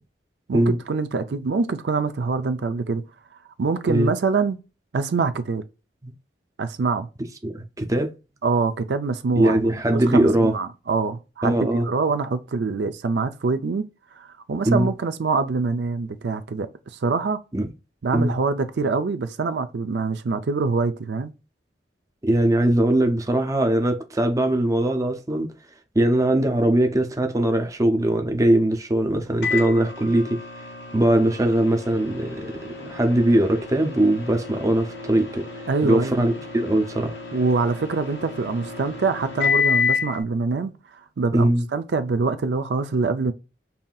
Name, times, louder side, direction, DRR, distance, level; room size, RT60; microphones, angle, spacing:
voice 1, 0.5-3.0 3.6-4.6 4.9-5.6 6.6-7.1 8.4-11.6 11.9-13.8 14.2-17.4 18.0-21.3 35.7-36.3 37.3-40.7 41.2-43.3, right 4 dB, 70° right, 0.4 m, -25 dB
voice 2, 7.4-8.1 9.4-10.6 11.4-11.9 14.7-14.9 17.5-17.7 18.1-18.3 22.2-25.5 25.9-30.4 30.9-32.5 32.8-35.5 35.8-37.2 41.3-41.6, right 1 dB, 20° right, 0.6 m, -21 dB
Microwave oven, 29.4-40.2, left 6 dB, 75° left, 1.2 m, -30 dB
5.5 x 2.6 x 2.3 m
head